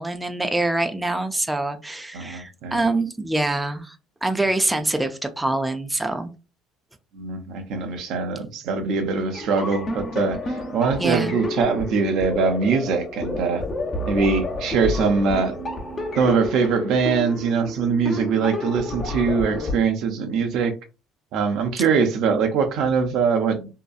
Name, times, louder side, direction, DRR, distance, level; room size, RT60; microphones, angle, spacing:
voice 1, 0.0-4.0 4.2-6.3 11.0-11.4, right 2 dB, 10° right, 0.4 m, -25 dB
voice 2, 2.1-2.8 7.1-13.6 14.1-15.5 16.1-20.7 21.3-23.7, right 5 dB, 70° right, 0.6 m, -22 dB
sound 1, 9.3-19.7, left 2 dB, 35° left, 0.9 m, -30 dB
2.7 x 2.2 x 2.4 m
supercardioid pair, 70°, 0 cm